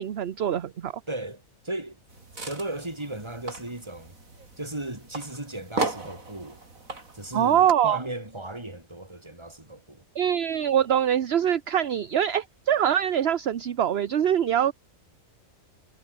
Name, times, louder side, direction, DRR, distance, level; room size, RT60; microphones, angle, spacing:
voice 1, 0.0-0.9 7.3-8.0 10.2-14.7, right 9 dB, 55° right, 1.0 m, -23 dB
voice 2, 1.1-2.0 2.4-4.2 4.6-6.6 7.1-10.0, right 1 dB, 20° right, 3.1 m, -36 dB
sound 1, 2.1-7.7, right 3 dB, 80° right, 4.6 m, -36 dB
omnidirectional pair, 1.4 m